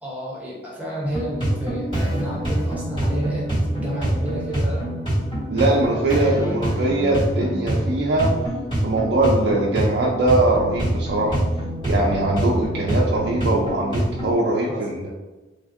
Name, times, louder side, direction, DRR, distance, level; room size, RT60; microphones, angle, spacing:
voice 1, 0.0-3.4 3.7-4.8 5.6-6.1 14.7-14.8, equal, 10° right, -5 dB, 0.7 m, -31 dB
sound 1, 1.0-14.3, right 1 dB, 25° left, 1.3 m, -25 dB
voice 2, 5.5-8.3 8.8-11.4 11.8-15.1, right 2 dB, 60° right, -4 dB, 0.4 m, -21 dB
3.2 x 2.4 x 2.5 m, 1.1 s
head